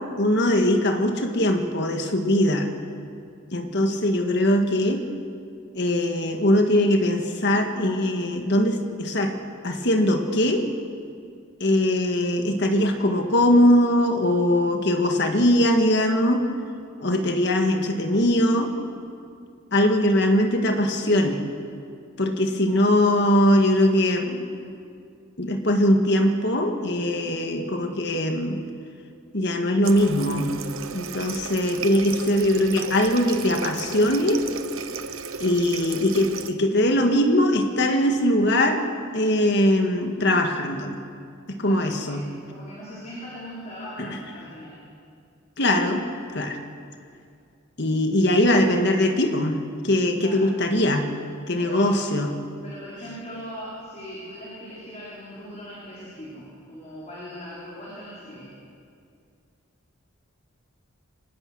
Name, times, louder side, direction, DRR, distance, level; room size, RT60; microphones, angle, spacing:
voice 1, 0.0-2.7 3.5-5.0 5.8-9.4 9.6-10.7 11.6-16.5 17.0-18.7 19.7-21.4 22.2-24.4 25.4-28.6 29.3-30.5 30.9-34.4 35.4-38.9 39.1-41.0 41.5-42.3 44.0-44.2 45.6-46.0 46.3-46.6 47.8-51.1 51.5-52.3, left 1 dB, 55° left, 5 dB, 1.9 m, -21 dB
Water tap faucet, 29.8-36.5, right 6 dB, 80° right, 1.1 m, -35 dB
voice 2, 41.6-44.8 48.0-48.8 50.2-50.5 51.5-52.0 52.6-58.5, equal, 35° left, -8 dB, 5.4 m, -40 dB
24.5 x 19.0 x 6.4 m, 2.4 s
head